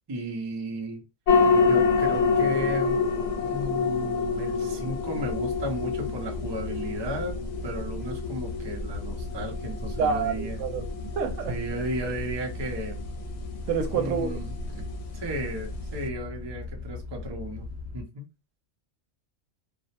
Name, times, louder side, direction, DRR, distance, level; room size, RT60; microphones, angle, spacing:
voice 1, 0.1-1.0 1.7-3.0 3.4-7.4 7.6-10.6 11.5-13.0 13.9-14.8 15.1-18.3, equal, 40° right, 0.4 m, -34 dB
sound 1, 1.3-16.1, left 4 dB, 75° left, 0.9 m, -28 dB
sound 2, 5.2-18.0, left 3 dB, 25° left, 0.7 m, -38 dB
voice 2, 10.0-10.8 11.2-11.5 13.7-14.4, right 6 dB, 80° right, 0.9 m, -27 dB
2.4 x 2.0 x 2.7 m
omnidirectional pair, 1.3 m